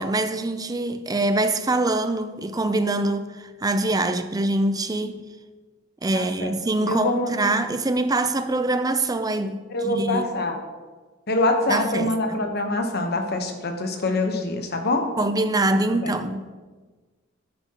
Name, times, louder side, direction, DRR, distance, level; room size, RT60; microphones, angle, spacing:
voice 1, 0.0-5.2 6.0-10.2 11.7-12.4 15.2-16.5, right 2 dB, 20° right, 0.5 m, -24 dB
voice 2, 6.1-6.5 6.8-7.3 9.7-10.6 11.3-15.1 15.9-16.1, left 2 dB, 55° left, 1.1 m, -25 dB
9.8 x 9.5 x 3.0 m
head